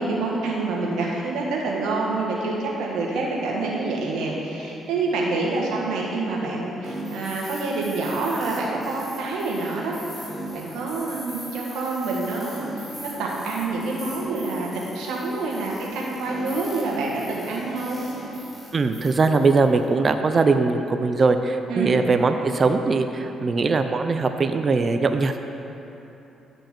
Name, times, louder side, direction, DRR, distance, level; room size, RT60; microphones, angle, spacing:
voice 1, 0.0-10.0 10.5-18.0 21.7-22.0, right 3 dB, 90° right, -3 dB, 1.4 m, -27 dB
sound 1, 6.8-19.9, right 1 dB, 5° right, 2.0 m, -39 dB
voice 2, 18.7-25.4, right 4 dB, 40° right, 7 dB, 0.4 m, -21 dB
11.0 x 5.3 x 4.4 m, 3.0 s
cardioid pair, 90°, 0 cm